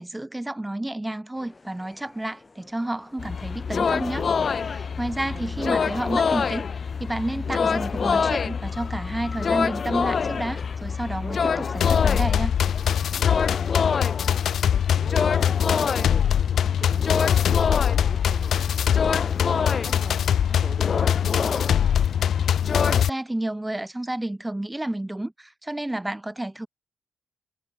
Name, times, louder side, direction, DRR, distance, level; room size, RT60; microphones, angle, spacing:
voice 1, 0.0-4.3 4.6-6.6 7.0-12.5 22.9-26.7, right 1 dB, 10° right, 5.8 m, -30 dB
sound 1, 1.3-11.2, left 3 dB, 30° left, 6.7 m, -53 dB
sound 2, 3.2-23.0, left 6 dB, 50° left, 1.9 m, -27 dB
voice 2, 5.1-5.7 13.3-14.0 14.7-17.3 17.7-19.1 19.5-21.6, right 4 dB, 40° right, 3.6 m, -44 dB
sound 3, 11.8-23.1, left 9 dB, 70° left, 0.9 m, -23 dB
supercardioid pair, 65°, 0 cm